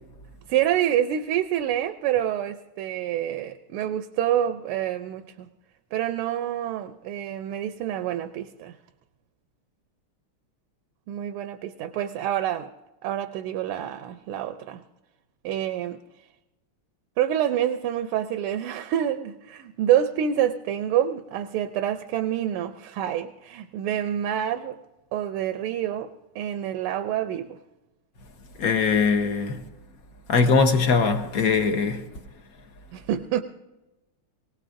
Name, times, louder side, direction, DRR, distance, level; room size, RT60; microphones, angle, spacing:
voice 1, 0.5-5.5 5.9-8.8 11.1-12.7 13.0-14.8 15.4-16.0 17.2-24.8 25.1-27.6 32.9-33.4, right 10 dB, 85° right, 1.5 m, -27 dB
voice 2, 28.6-29.6 30.3-32.1, left 4 dB, 50° left, 1.3 m, -21 dB
24.5 x 17.5 x 2.6 m
omnidirectional pair, 2.4 m